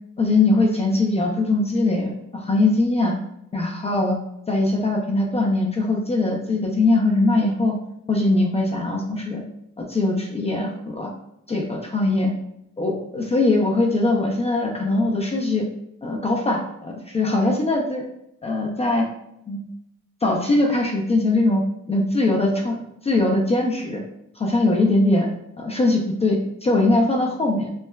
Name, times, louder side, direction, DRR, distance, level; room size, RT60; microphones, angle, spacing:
voice 1, 0.2-3.1 3.5-4.2 4.5-7.7 8.1-9.4 9.8-11.1 11.5-12.3 12.8-15.6 16.0-18.0 18.4-19.1 19.5-19.7 20.2-21.6 21.9-22.8 23.0-24.0 24.4-25.3 25.6-27.7, left 2 dB, 20° left, -1 dB, 0.4 m, -21 dB
3.3 x 2.0 x 2.2 m, 0.80 s
cardioid pair, 90°, 30 cm